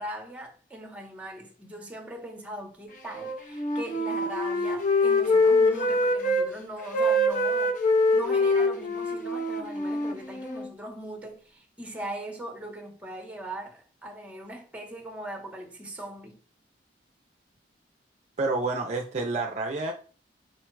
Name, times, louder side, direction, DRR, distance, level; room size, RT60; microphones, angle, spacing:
voice 1, 0.0-7.8 8.1-16.4, right 1 dB, 10° right, 0.8 m, -40 dB
Wind instrument woodwind instrument, 3.1-6.5 6.8-10.7, left 1 dB, 45° left, 0.6 m, -24 dB
voice 2, 18.4-19.9, right 3 dB, 40° right, 0.4 m, -28 dB
4.4 x 2.2 x 4.5 m
head